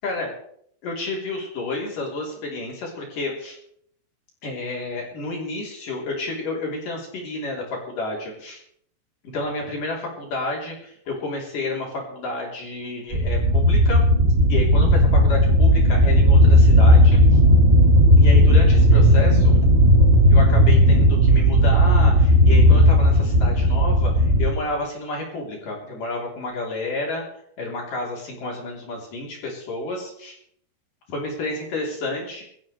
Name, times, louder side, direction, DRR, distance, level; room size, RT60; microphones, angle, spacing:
voice 1, 0.8-3.6 4.4-8.6 9.3-14.0 14.5-17.4 18.2-19.6 20.3-27.2 27.6-30.4 31.1-32.4, left 2 dB, 55° left, -2 dB, 5.3 m, -30 dB
sound 1, 13.1-24.5, equal, 25° right, 1.5 m, -15 dB
21.5 x 14.5 x 3.4 m, 0.67 s
omnidirectional pair, 4.5 m